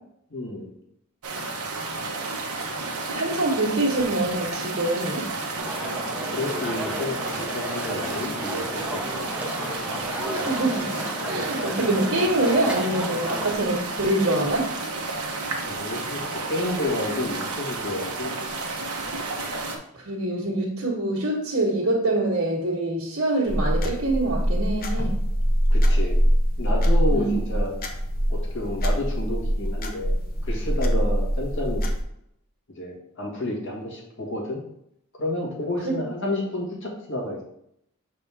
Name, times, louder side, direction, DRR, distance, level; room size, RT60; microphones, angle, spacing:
voice 1, 0.3-0.7 6.1-9.3 15.6-18.3 25.7-26.2 26.6-27.7 28.3-30.2 30.4-31.8 32.8-34.6 35.1-37.4, left 1 dB, 55° left, -2 dB, 1.7 m, -30 dB
sound 1, 1.2-19.8, right 3 dB, 85° right, 1.1 m, -32 dB
voice 2, 3.1-5.4 10.3-11.0 11.3-14.7 19.9-25.1 27.1-27.3 35.8-36.0, right 2 dB, 65° right, -7 dB, 1.5 m, -25 dB
sound 2, 5.6-13.5, equal, 5° right, 0.8 m, -33 dB
sound 3, 23.5-32.0, equal, 40° left, 0.7 m, -23 dB
7.0 x 4.2 x 3.4 m, 0.75 s
head